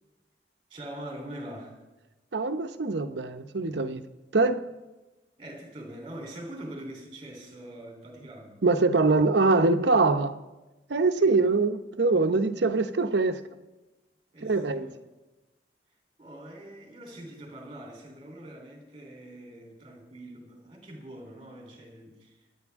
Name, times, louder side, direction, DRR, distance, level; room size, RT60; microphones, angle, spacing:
voice 1, 0.7-1.8 5.4-8.6 8.9-9.2 11.2-11.4 14.3-14.9 16.2-22.5, right 1 dB, 30° right, 3.4 m, -43 dB
voice 2, 2.3-4.0 4.3-4.6 8.6-10.4 10.9-13.4 14.4-14.9, right 3 dB, 80° right, 0.8 m, -23 dB
25.0 x 9.0 x 3.6 m
head